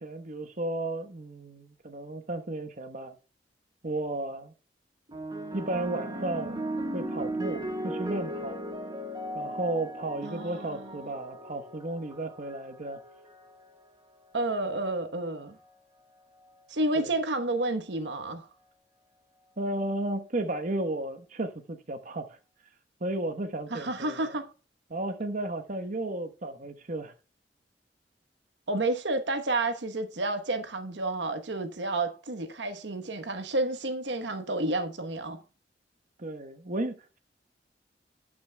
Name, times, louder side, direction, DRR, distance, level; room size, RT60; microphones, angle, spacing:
voice 1, 0.0-3.1 3.8-4.5 5.5-6.6 6.9-8.6 9.3-13.0 17.0-17.1 19.6-22.4 23.0-24.3 24.9-27.1 36.2-37.2, right 2 dB, 45° right, 1.1 m, -33 dB
sound 1, 5.1-13.7 14.6-15.0, right 1 dB, 25° right, 1.4 m, -37 dB
voice 2, 10.2-10.9 14.3-15.6 16.7-18.5 23.7-24.5 28.7-35.4, right 2 dB, 80° right, 1.1 m, -30 dB
18.0 x 6.1 x 2.2 m
head